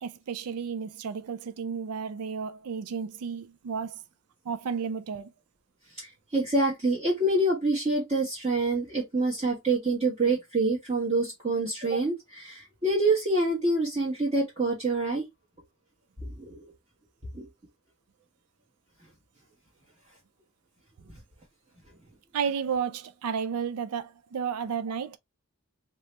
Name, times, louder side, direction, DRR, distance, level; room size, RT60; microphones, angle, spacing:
voice 1, 0.0-4.0 4.5-5.3 22.3-25.2, right 6 dB, 85° right, 0.4 m, -32 dB
voice 2, 6.0-15.3 16.4-16.7 17.3-17.5, right 2 dB, 30° right, 1.2 m, -26 dB
3.0 x 2.9 x 3.2 m
head